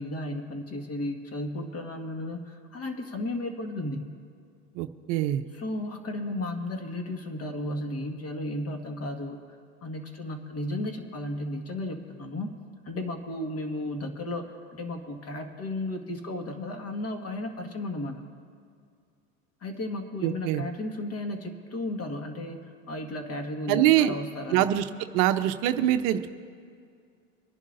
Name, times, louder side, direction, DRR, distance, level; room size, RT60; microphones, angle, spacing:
voice 1, 0.0-4.1 5.5-9.4 9.8-12.5 12.9-14.4 14.7-18.2 19.6-24.7, left 1 dB, 35° left, 4 dB, 1.8 m, -34 dB
voice 2, 4.8-5.4 20.2-20.6 23.7-24.1 24.5-24.8 25.1-26.3, right 12 dB, 55° right, 8 dB, 0.7 m, -24 dB
26.0 x 11.0 x 2.6 m, 2.2 s
hypercardioid pair, 95°, 43 cm